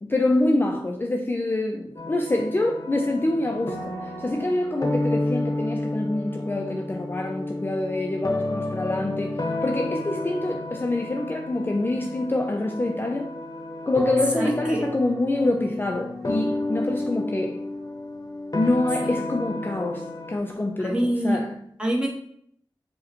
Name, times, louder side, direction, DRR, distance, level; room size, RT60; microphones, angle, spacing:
voice 1, 0.0-13.3 13.9-17.6 18.5-21.6, left 2 dB, 25° left, 0.3 m, -26 dB
sound 1, 2.0-20.4, left 2 dB, 40° left, 0.7 m, -31 dB
voice 2, 14.4-14.8 19.0-19.1 20.9-21.4 21.8-22.1, right 1 dB, 10° right, 0.9 m, -25 dB
4.6 x 2.1 x 2.9 m
cardioid pair, 45°, 9 cm